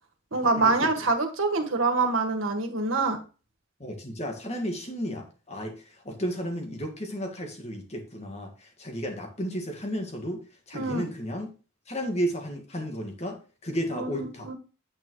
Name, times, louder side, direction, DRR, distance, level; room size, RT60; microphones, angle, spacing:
voice 1, 0.3-3.2 10.7-11.1 13.9-14.5, right 3 dB, 90° right, 4 dB, 1.6 m, -25 dB
voice 2, 3.8-10.4 10.7-11.5 11.9-14.5, equal, 30° left, 3 dB, 1.8 m, -33 dB
8.9 x 8.7 x 3.2 m, 0.34 s
head